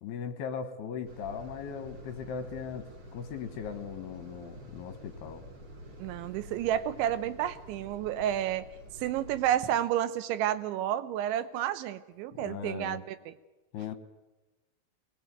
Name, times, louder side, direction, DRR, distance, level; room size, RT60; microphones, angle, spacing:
voice 1, 0.0-2.9 3.1-5.4 12.3-13.0 13.7-14.0, left 7 dB, 70° left, 8 dB, 2.8 m, -38 dB
sound 1, 1.0-9.5, equal, 35° right, 1.8 m, -48 dB
voice 2, 6.0-8.6 9.0-13.4, right 11 dB, 80° right, 14 dB, 3.2 m, -30 dB
23.0 x 20.0 x 9.3 m, 1.1 s
omnidirectional pair, 5.4 m